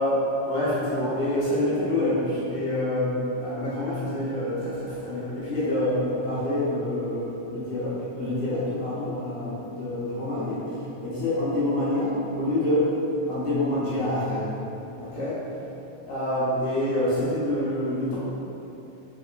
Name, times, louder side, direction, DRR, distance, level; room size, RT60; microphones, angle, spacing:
voice 1, 0.0-12.9 13.3-14.5 15.0-15.4 16.1-18.2, left 1 dB, 80° left, -10 dB, 2.8 m, -27 dB
5.6 x 3.5 x 2.4 m, 2.9 s
omnidirectional pair, 3.4 m